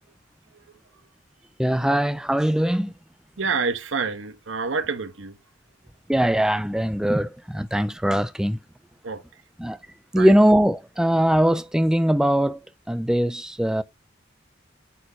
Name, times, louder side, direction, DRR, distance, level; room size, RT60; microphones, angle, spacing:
voice 1, 1.6-2.9 6.1-8.6 9.6-9.8 10.1-12.6 12.9-13.8, equal, 5° right, 0.3 m, -21 dB
voice 2, 3.4-5.4 9.0-9.2 10.2-10.3, right 4 dB, 85° right, 1.1 m, -27 dB
8.8 x 4.3 x 2.7 m
head